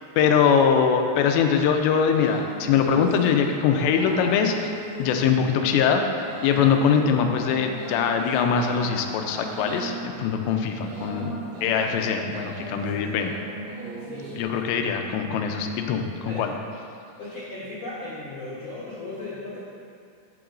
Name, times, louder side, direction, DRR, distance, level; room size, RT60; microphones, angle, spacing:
voice 1, 0.2-4.7 5.0-11.3 11.6-13.3 14.4-16.5, left 6 dB, 85° left, 4 dB, 2.8 m, -22 dB
sound 1, 1.6-14.4, right 2 dB, 70° right, 1.7 m, -38 dB
voice 2, 11.8-12.1 12.6-13.1 14.0-14.9 16.3-16.4 17.2-19.6, left 2 dB, 50° left, -9 dB, 1.6 m, -38 dB
11.0 x 8.6 x 2.5 m, 2.3 s
omnidirectional pair, 5.0 m